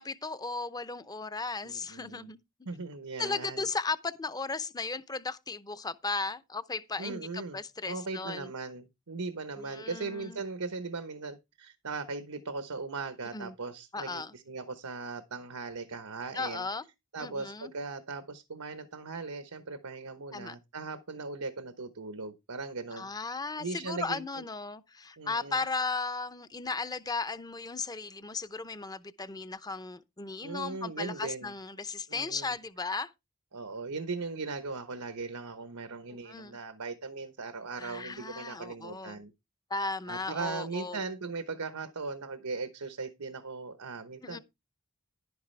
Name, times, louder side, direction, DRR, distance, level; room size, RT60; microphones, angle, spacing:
voice 1, 0.0-2.4 3.2-8.5 9.6-10.4 13.3-13.5 13.9-14.3 16.3-16.8 17.2-17.7 20.3-20.6 22.9-33.1 36.2-36.6 37.8-39.2 39.7-41.0 44.2-44.4, left 3 dB, 15° left, 0.6 m, -36 dB
voice 2, 1.6-2.3 2.7-3.7 7.0-7.6 7.9-16.7 17.1-23.1 23.6-24.2 25.2-25.6 30.4-31.5 32.1-32.5 33.5-39.3 40.1-44.4, right 4 dB, 85° right, 1.1 m, -38 dB
11.0 x 9.5 x 3.3 m
head